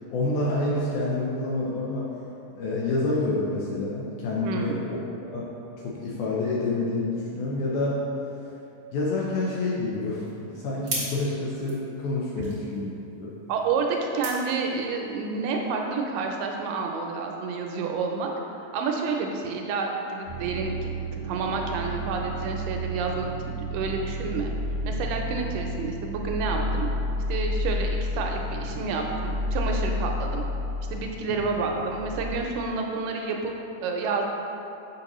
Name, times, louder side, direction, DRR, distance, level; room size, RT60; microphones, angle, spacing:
voice 1, 0.1-2.1 2.5-5.0 5.3-5.5 5.8-8.0 8.9-12.9 13.2-13.3 31.3-31.4, left 2 dB, 75° left, -4 dB, 1.8 m, -28 dB
voice 2, 4.4-4.8 13.5-18.3 18.7-24.5 24.8-26.9 27.3-30.5 30.9-33.5 33.8-34.2, right 4 dB, 80° right, 2 dB, 2.1 m, -29 dB
sound 1, 9.5-15.2, right 2 dB, 45° right, 1.1 m, -40 dB
sound 2, 20.3-32.3, equal, 60° right, 0.7 m, -31 dB
6.4 x 5.6 x 3.0 m, 2.8 s
omnidirectional pair, 4.0 m